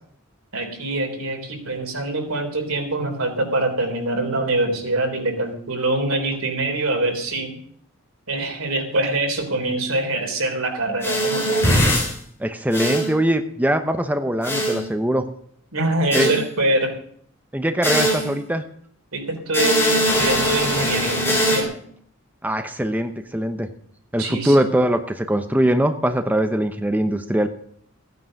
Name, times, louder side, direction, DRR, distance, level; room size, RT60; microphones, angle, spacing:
voice 1, 0.5-7.6 8.3-11.7 15.7-17.0 19.1-21.7 24.2-24.7, right 2 dB, 85° right, 4 dB, 3.5 m, -24 dB
sound 1, 11.0-12.1 12.7-13.1 14.4-14.8 16.1-16.4 17.8-18.4 19.5-21.6, equal, 10° left, 4.1 m, -21 dB
voice 2, 12.4-15.3 16.1-16.3 17.5-18.6 22.4-23.7 24.1-27.5, right 1 dB, 10° right, 7 dB, 0.8 m, -21 dB
15.0 x 9.4 x 6.5 m, 0.63 s
head